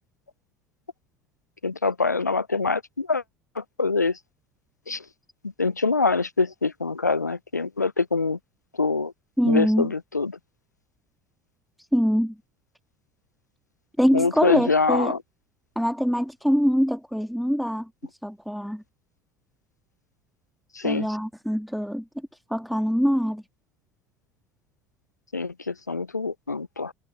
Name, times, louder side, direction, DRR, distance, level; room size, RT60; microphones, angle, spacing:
voice 1, 1.6-3.2 3.6-4.1 4.9-5.0 5.6-8.4 8.8-9.1 9.4-10.3 14.1-15.2 20.8-21.1 25.3-26.9, left 4 dB, 90° left, 0.8 m, -24 dB
voice 2, 9.4-9.9 11.9-12.4 14.0-15.1 15.8-17.9 18.2-18.8 20.8-22.0 22.5-23.4, equal, ahead, 2.2 m, -23 dB
figure-of-eight pair, 65°, 9 cm